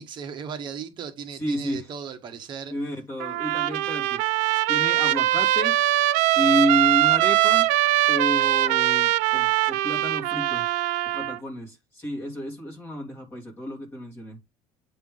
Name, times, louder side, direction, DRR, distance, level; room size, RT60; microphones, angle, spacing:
voice 1, 0.0-2.7, right 7 dB, 35° right, 1.1 m, -36 dB
voice 2, 1.4-1.9 2.7-4.2 4.7-5.8 6.3-7.7 8.1-10.7 11.1-14.4, equal, 15° left, 2.8 m, -30 dB
Trumpet, 3.2-11.4, right 15 dB, 90° right, 0.5 m, -22 dB
8.4 x 3.4 x 5.3 m
cardioid pair, 175°, 13 cm